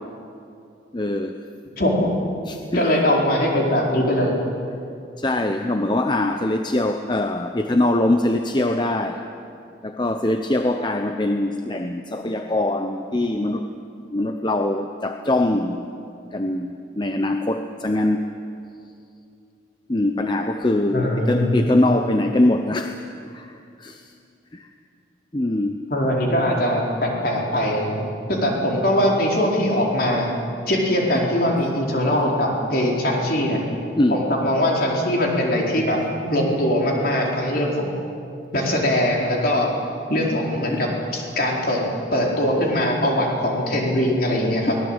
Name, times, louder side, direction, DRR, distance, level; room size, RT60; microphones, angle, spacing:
voice 1, 0.9-1.3 2.5-3.0 5.2-9.2 9.8-13.7 14.1-15.9 16.3-18.3 19.9-23.0 23.2-24.1 24.5-24.7 25.3-25.8 32.1-32.2 33.9-34.3 40.7-40.8 44.7-44.8, left 1 dB, 25° left, 6 dB, 0.8 m, -23 dB
voice 2, 1.8-2.1 2.7-4.3 20.9-21.5 25.9-30.3 30.7-33.6 34.1-36.0 36.2-37.9 38.5-39.7 40.1-41.8 42.1-44.7, left 1 dB, 50° left, -1 dB, 4.4 m, -21 dB
24.0 x 18.5 x 9.0 m, 2.5 s
head